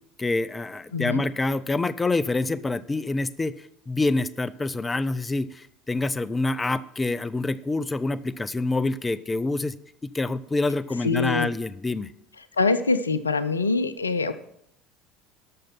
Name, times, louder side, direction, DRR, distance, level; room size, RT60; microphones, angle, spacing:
voice 1, 0.2-9.8 10.0-12.1, left 2 dB, 20° left, 16 dB, 0.6 m, -26 dB
voice 2, 11.0-11.5 12.5-14.3, left 4 dB, 90° left, 14 dB, 0.5 m, -24 dB
12.0 x 6.5 x 5.7 m, 0.73 s
figure-of-eight pair, 70°, 0 cm